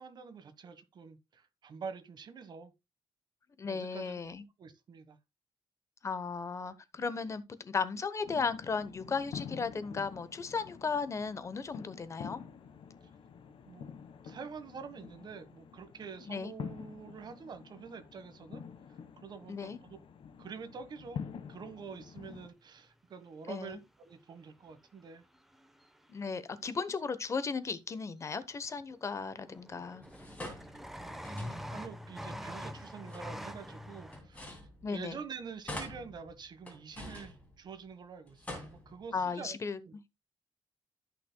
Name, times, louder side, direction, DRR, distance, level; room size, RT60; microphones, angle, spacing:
voice 1, 0.0-2.7 3.7-4.2 4.6-5.2 13.6-13.9 14.2-18.6 19.2-20.0 20.4-21.2 21.5-25.2 31.0-34.4 34.9-39.6 39.8-39.9, right 5 dB, 55° right, 1.3 m, -47 dB
voice 2, 3.6-4.4 6.0-12.4 16.3-16.5 19.5-19.8 23.5-23.8 26.1-30.0 34.8-35.2 39.1-39.8, left 5 dB, 35° left, 0.9 m, -36 dB
sound 1, 8.2-22.5, left 7 dB, 80° left, 1.4 m, -47 dB
sound 2, 23.7-23.8 25.3-26.0 28.3-28.4 28.6-29.1 29.4-34.2, equal, 5° right, 0.9 m, -44 dB
sound 3, 30.0-31.9 32.9-35.2 35.6-37.9 38.3-39.3, left 1 dB, 15° left, 2.8 m, -47 dB
14.0 x 5.9 x 2.2 m
wide cardioid pair, 155°, 9 cm